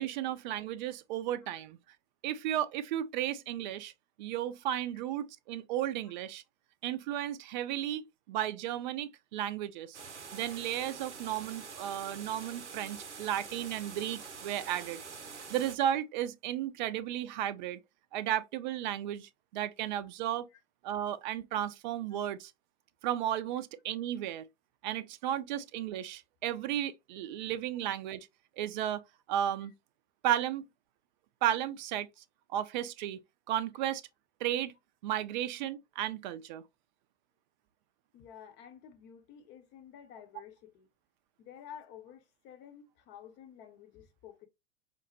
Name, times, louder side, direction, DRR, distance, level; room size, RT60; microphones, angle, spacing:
voice 1, 0.0-1.8 2.2-3.9 4.2-6.4 6.8-10.0 10.3-15.0 15.5-17.8 18.1-20.5 20.8-22.5 23.0-24.5 24.8-28.3 28.6-29.0 29.3-29.7 30.2-30.6 31.4-32.1 32.5-33.2 33.5-34.0 34.4-34.7 35.0-36.6, right 11 dB, 45° right, 0.4 m, -34 dB
sound 1, 9.9-15.8, right 5 dB, 85° right, 0.6 m, -46 dB
voice 2, 38.1-40.9 41.4-44.5, left 9 dB, 30° left, 0.7 m, -51 dB
5.0 x 2.0 x 2.7 m
figure-of-eight pair, 95°, 34 cm